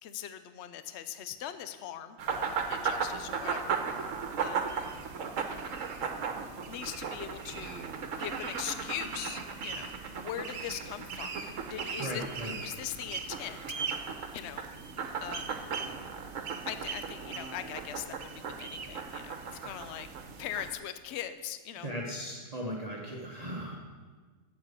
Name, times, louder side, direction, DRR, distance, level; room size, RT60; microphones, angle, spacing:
voice 1, 0.0-4.9 6.7-7.9 8.2-13.6 14.3-14.7 15.2-15.6 16.7-20.1 20.4-21.9, left 10 dB, 60° left, 11 dB, 0.9 m, -41 dB
sound 1, 2.2-20.7, right 6 dB, 70° right, 1.3 m, -36 dB
voice 2, 12.0-12.5 21.8-23.8, equal, 30° right, -2 dB, 1.2 m, -37 dB
8.8 x 7.5 x 8.0 m, 1.4 s
omnidirectional pair, 1.4 m